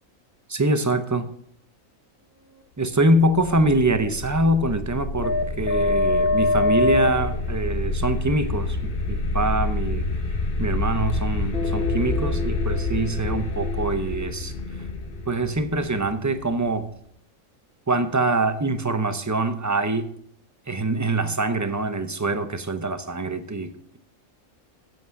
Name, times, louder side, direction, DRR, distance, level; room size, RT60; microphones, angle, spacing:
voice 1, 0.5-1.3 2.8-10.1 10.6-14.5 15.3-16.9 17.9-20.1 20.7-24.0, right 2 dB, 20° right, 9 dB, 0.5 m, -24 dB
sound 1, 3.3-16.9, left 2 dB, 45° left, 1.1 m, -26 dB
8.3 x 7.5 x 5.8 m, 0.69 s
omnidirectional pair, 1.4 m